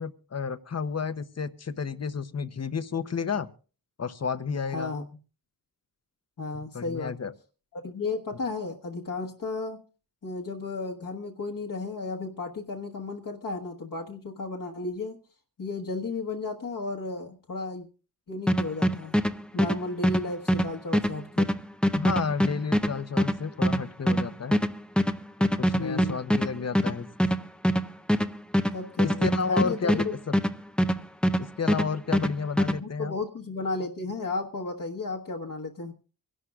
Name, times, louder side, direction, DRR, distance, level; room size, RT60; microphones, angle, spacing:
voice 1, 0.0-3.5 4.0-4.9 6.5-7.3 21.9-24.6 25.4-27.1 29.0-30.3 31.4-33.1, left 5 dB, 45° left, 12 dB, 0.8 m, -31 dB
voice 2, 4.7-5.1 6.4-7.1 7.7-9.8 10.2-15.2 15.6-17.9 18.3-19.1 19.5-21.5 25.8-26.2 28.7-30.1 32.8-35.9, left 3 dB, 65° left, -2 dB, 1.3 m, -34 dB
sound 1, 18.5-31.4 31.7-32.8, equal, 5° left, 0.5 m, -24 dB
25.5 x 11.0 x 2.4 m, 0.37 s
wide cardioid pair, 115°, 36 cm